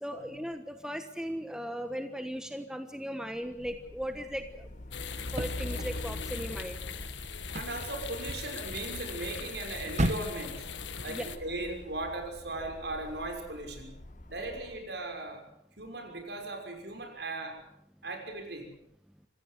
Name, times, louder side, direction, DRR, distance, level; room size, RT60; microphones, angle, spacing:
voice 1, 0.0-4.7 5.3-6.8 11.1-11.3, equal, 5° right, 7 dB, 1.2 m, -37 dB
Truck, 3.5-14.9, left 1 dB, 45° left, 1.2 m, -44 dB
sound 1, 4.9-11.4, left 6 dB, 85° left, 1.5 m, -41 dB
sound 2, 5.2-11.1, right 1 dB, 40° right, 1.5 m, -38 dB
voice 2, 7.5-10.7 11.0-14.0 14.3-15.4 15.8-17.6 18.0-18.7, right 2 dB, 65° right, 4 dB, 6.1 m, -38 dB
26.5 x 15.5 x 8.0 m, 0.74 s
head